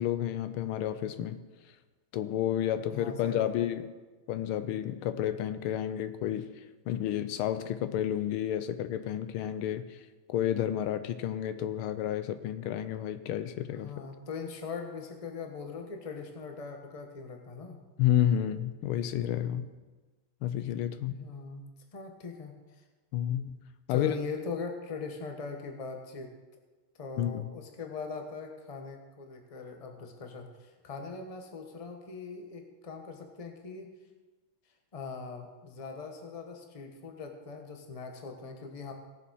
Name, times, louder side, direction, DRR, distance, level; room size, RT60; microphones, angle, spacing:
voice 1, 0.0-1.4 2.1-3.8 4.3-6.5 6.9-10.0 10.3-13.9 18.0-19.7 20.4-21.3 23.1-23.6 23.9-24.1 27.2-27.5, left 11 dB, 85° left, 11 dB, 1.5 m, -30 dB
voice 2, 2.9-3.7 13.7-17.8 21.1-22.8 23.9-26.3 27.0-33.9 34.9-38.9, left 5 dB, 25° left, 4 dB, 0.9 m, -41 dB
18.0 x 7.0 x 4.7 m, 1.3 s
omnidirectional pair, 2.4 m